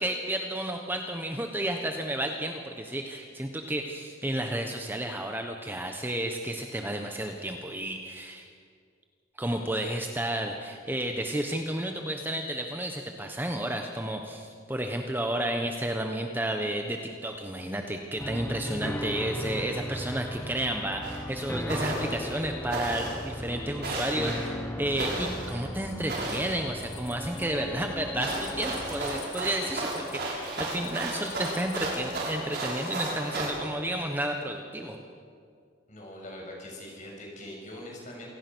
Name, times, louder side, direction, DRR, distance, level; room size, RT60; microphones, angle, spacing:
voice 1, 0.0-8.5 9.4-35.0, right 1 dB, 10° right, 3 dB, 1.2 m, -32 dB
sound 1, 18.2-29.2, equal, 10° left, 1.1 m, -37 dB
sound 2, 21.0-21.2 21.7-22.2 22.7-23.2 23.8-24.4 25.0-25.5 26.1-26.6 28.2-33.5, right 2 dB, 55° right, 6.1 m, -33 dB
sound 3, 25.9-27.5 27.7-30.3 30.8-31.8, left 8 dB, 60° left, 3.6 m, -48 dB
voice 2, 35.9-38.3, left 1 dB, 40° left, -1 dB, 6.7 m, -42 dB
27.5 x 17.5 x 6.3 m, 2.2 s
head